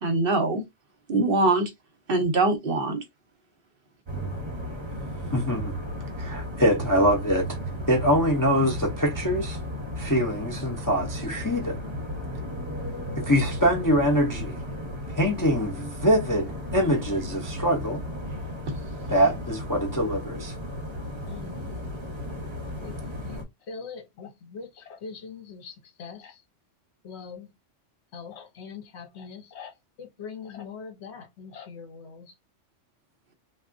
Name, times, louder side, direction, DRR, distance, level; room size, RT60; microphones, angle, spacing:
voice 1, 0.0-0.6 1.1-1.7 2.1-3.0, right 2 dB, 55° right, 0.9 m, -23 dB
sound 1, 4.1-23.4, equal, 25° right, 0.8 m, -34 dB
voice 2, 5.3-5.7 6.2-7.5 7.9-9.6 10.0-11.8 13.2-14.6 15.1-18.0 19.1-20.5, equal, 25° left, 0.5 m, -24 dB
voice 3, 21.3-21.8 22.8-23.0 23.2-26.4 27.0-27.5 28.1-32.3, left 5 dB, 70° left, 1.0 m, -42 dB
3.4 x 2.3 x 2.5 m
omnidirectional pair, 1.2 m